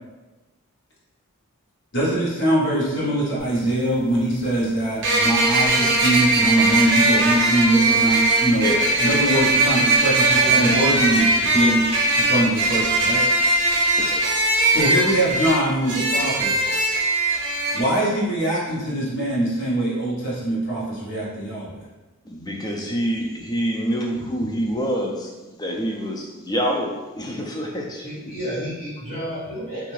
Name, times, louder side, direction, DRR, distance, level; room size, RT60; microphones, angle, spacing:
voice 1, 1.9-8.7 9.0-11.8 12.1-13.2 14.7-16.6 17.7-21.8, right 1 dB, 55° left, -7 dB, 1.0 m, -22 dB
sound 1, 3.4-3.5 5.0-17.8, right 2 dB, 55° right, 0.5 m, -20 dB
voice 2, 10.3-10.7 11.5-11.7 28.0-29.9, equal, 35° left, -13 dB, 1.4 m, -31 dB
voice 3, 22.3-28.1, equal, 15° left, -1 dB, 0.3 m, -26 dB
2.7 x 2.4 x 3.1 m, 1.1 s
head